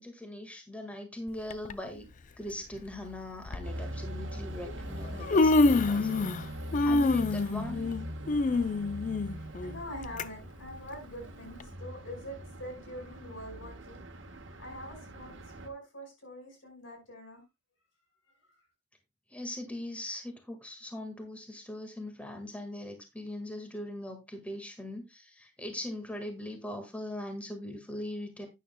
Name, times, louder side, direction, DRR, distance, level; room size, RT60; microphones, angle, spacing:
voice 1, 0.0-2.1 2.4-6.3 6.8-7.9 19.3-28.5, left 1 dB, 5° left, 1.7 m, -40 dB
Human voice, 1.5-1.7 2.8-2.9 3.5-3.6 4.7-4.8 5.0-6.5 6.7-10.2 10.6-10.7 11.6-11.7, left 3 dB, 40° left, 0.4 m, -26 dB
sound 1, 3.6-15.7, equal, 75° right, 1.4 m, -42 dB
voice 2, 9.6-15.4 15.6-17.4 18.4-18.6, equal, 85° left, 5.1 m, -44 dB
12.0 x 9.3 x 2.2 m
head